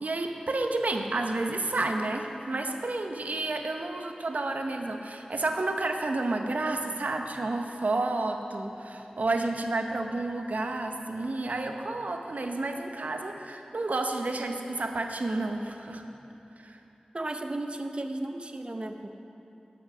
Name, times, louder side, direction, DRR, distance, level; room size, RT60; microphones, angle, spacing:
voice 1, 0.0-16.0 16.6-16.8, right 2 dB, 85° right, 4 dB, 0.7 m, -30 dB
voice 2, 17.1-19.1, right 2 dB, 45° right, 6 dB, 0.7 m, -34 dB
12.5 x 5.8 x 6.5 m, 2.9 s
wide cardioid pair, 45°, 3 cm